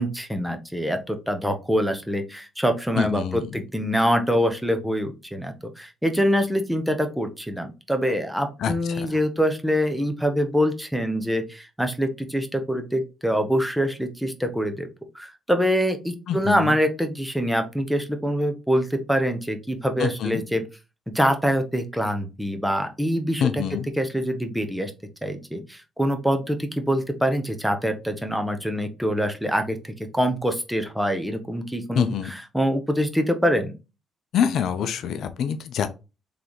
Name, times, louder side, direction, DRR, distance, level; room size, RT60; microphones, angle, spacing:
voice 1, 0.0-14.9 15.1-20.6 21.1-23.6 24.0-24.9 25.2-32.1 32.5-33.7, equal, ahead, 6 dB, 0.8 m, -25 dB
voice 2, 3.0-3.6 8.6-9.2 16.3-16.8 20.0-20.4 23.4-23.9 31.9-32.3 34.3-35.9, left 8 dB, 70° left, 10 dB, 0.5 m, -26 dB
3.9 x 3.4 x 3.0 m, 0.29 s
cardioid pair, 90°, 0 cm